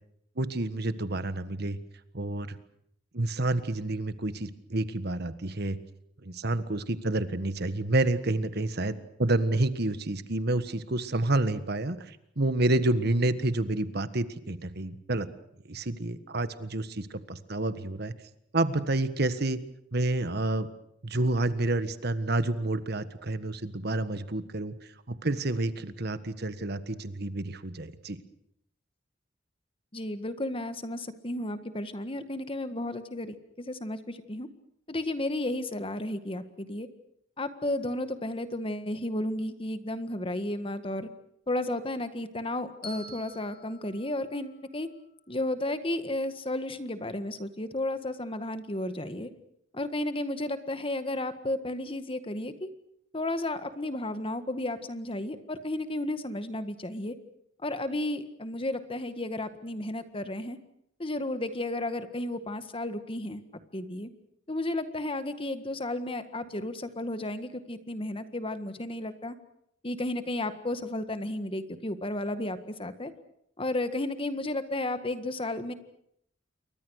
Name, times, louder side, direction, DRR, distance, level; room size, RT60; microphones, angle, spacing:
voice 1, 0.4-1.8 2.1-2.6 3.1-5.8 6.2-15.3 15.7-18.1 18.5-19.6 19.9-20.7 21.0-24.7 25.1-28.2, right 2 dB, 60° right, 12 dB, 1.6 m, -29 dB
voice 2, 29.9-34.5 34.9-36.9 37.4-41.1 41.5-44.9 45.3-49.3 49.7-52.7 53.1-57.1 57.6-60.6 61.0-63.4 63.7-64.1 64.5-69.4 69.8-73.1 73.6-75.7, left 1 dB, 30° left, 10 dB, 1.7 m, -33 dB
Bell, 42.8-45.0, left 2 dB, 55° left, 5.3 m, -48 dB
29.0 x 23.5 x 6.5 m, 0.72 s
head